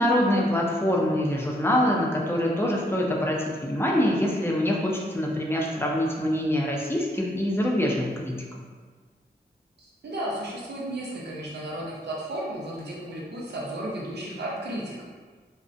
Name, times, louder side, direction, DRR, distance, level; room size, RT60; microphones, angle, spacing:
voice 1, 0.0-8.4, left 1 dB, 15° left, -2 dB, 0.5 m, -25 dB
voice 2, 9.8-15.0, right 1 dB, 75° right, -5 dB, 0.6 m, -34 dB
2.4 x 2.1 x 2.5 m, 1.5 s
cardioid pair, 55°, 17 cm